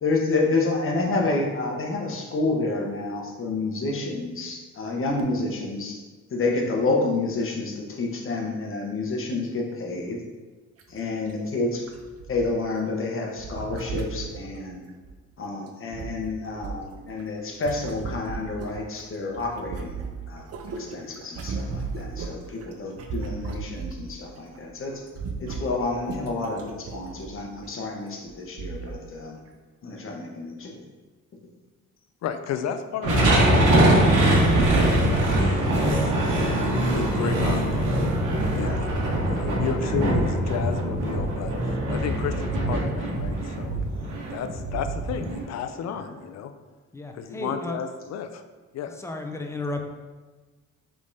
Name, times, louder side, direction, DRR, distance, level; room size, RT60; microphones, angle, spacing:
voice 1, 0.0-6.0 6.3-10.2 10.9-11.8 12.3-14.8 15.4-20.0 20.3-20.4 20.9-24.9 25.4-29.4 29.8-30.7 34.7-35.0 38.6-38.7 43.1-43.3, left 3 dB, 45° left, 0 dB, 0.9 m, -29 dB
voice 2, 1.1-1.4 46.9-47.8 49.0-49.8, left 2 dB, 10° left, 3 dB, 0.5 m, -33 dB
sound 1, 10.8-10.9 11.2-11.3 11.9-12.8 13.4-15.1 15.7-19.0 19.3-24.1 24.5-24.7 24.9-27.7 28.3-28.4 28.6-29.0 29.5-29.6, right 4 dB, 55° right, 0.6 m, -36 dB
voice 3, 32.2-34.7 35.1-35.3 35.8-37.8 38.6-38.9 39.3-43.8 44.3-46.5 47.1-48.4 48.7-49.0, left 7 dB, 60° left, 9 dB, 0.4 m, -33 dB
sound 2, 33.0-45.4, right 1 dB, 80° right, 1.3 m, -22 dB
5.1 x 3.5 x 2.6 m, 1.3 s
cardioid pair, 90°, 30 cm